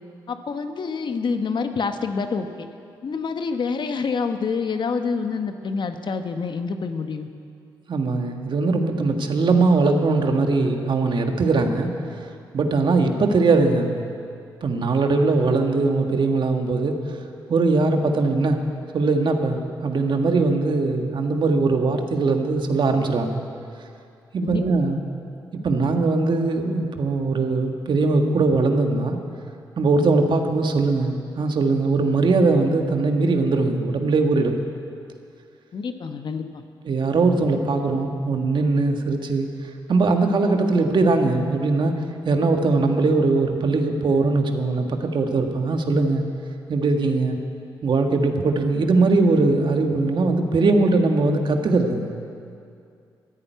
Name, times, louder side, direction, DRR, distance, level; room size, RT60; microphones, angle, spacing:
voice 1, 0.3-2.7 3.0-7.3 24.4-24.6 35.7-36.6, left 5 dB, 60° left, 7 dB, 1.2 m, -27 dB
voice 2, 7.9-11.9 12.5-14.0 14.6-17.2 17.5-18.6 18.9-23.4 24.3-25.0 25.6-29.2 29.8-34.6 36.9-39.5 39.9-41.9 42.3-46.2 46.7-47.4 47.8-52.2, right 3 dB, 60° right, 4 dB, 1.7 m, -20 dB
14.0 x 11.0 x 9.4 m, 2.4 s
supercardioid pair, 50°, 9 cm